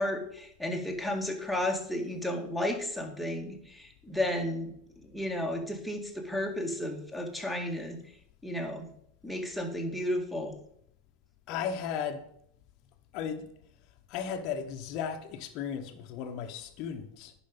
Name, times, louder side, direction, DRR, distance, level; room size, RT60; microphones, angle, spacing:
voice 1, 0.0-4.7 5.0-8.0 8.4-8.9 9.2-10.6, left 1 dB, ahead, 2.0 m, -33 dB
voice 2, 11.5-12.2 13.1-13.5 14.1-17.3, left 7 dB, 50° left, 1.1 m, -35 dB
10.5 x 5.0 x 5.4 m
hypercardioid pair, 90°, 0 cm